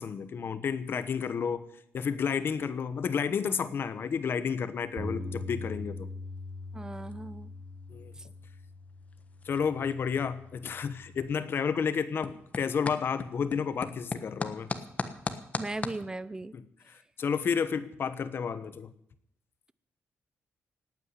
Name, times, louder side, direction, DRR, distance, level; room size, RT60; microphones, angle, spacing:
voice 1, 0.0-1.6 1.9-6.1 7.9-8.1 9.4-14.7 16.5-18.9, left 6 dB, 50° left, 13 dB, 1.2 m, -31 dB
sound 1, 3.3-16.0, left 4 dB, 30° left, 1.2 m, -42 dB
Bass guitar, 5.0-11.2, left 2 dB, 40° right, 2.2 m, -42 dB
voice 2, 6.7-7.5 8.2-8.3 15.6-16.5, right 2 dB, 15° right, 17 dB, 0.6 m, -37 dB
18.0 x 9.1 x 8.2 m, 0.73 s
cardioid pair, 130°, 5 cm